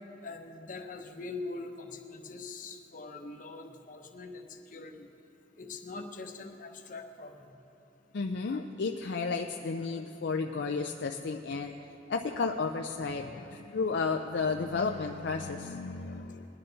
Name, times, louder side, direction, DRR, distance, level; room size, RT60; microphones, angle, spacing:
voice 1, 0.2-5.1 5.6-7.5, left 3 dB, 45° left, 3 dB, 0.9 m, -43 dB
voice 2, 8.1-11.7 12.1-16.5, left 4 dB, 70° left, 3 dB, 0.5 m, -32 dB
21.0 x 9.9 x 4.0 m, 2.8 s
head